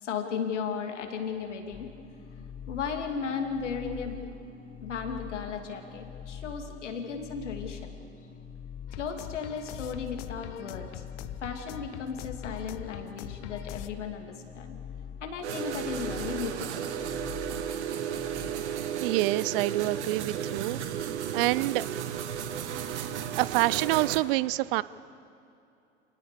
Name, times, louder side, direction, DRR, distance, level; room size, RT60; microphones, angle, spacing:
voice 1, 0.0-1.9 2.7-4.2 4.8-8.0 8.9-11.0 11.4-14.8 15.2-16.8, left 6 dB, 75° left, 4 dB, 2.7 m, -35 dB
sound 1, 1.7-18.5, left 7 dB, 25° left, 1.5 m, -44 dB
sound 2, 8.9-13.9, left 16 dB, 45° left, 0.9 m, -43 dB
sound 3, 15.4-24.2, right 9 dB, 70° right, 1.5 m, -34 dB
voice 2, 19.0-20.8 21.3-21.9 23.4-24.8, right 19 dB, 50° right, 20 dB, 0.6 m, -27 dB
27.5 x 19.0 x 6.8 m, 2.6 s
figure-of-eight pair, 85°, 36 cm